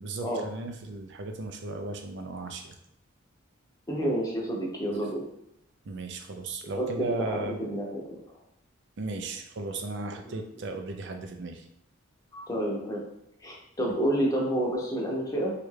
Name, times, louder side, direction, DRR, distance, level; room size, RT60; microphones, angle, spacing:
voice 1, 0.0-2.7 5.9-7.6 9.0-11.6, right 3 dB, 60° right, 5 dB, 0.4 m, -36 dB
voice 2, 3.9-5.2 6.8-8.0 10.2-10.3 12.3-13.0 13.4-15.5, right 1 dB, 20° left, -2 dB, 0.7 m, -29 dB
3.1 x 2.3 x 3.2 m, 0.81 s
head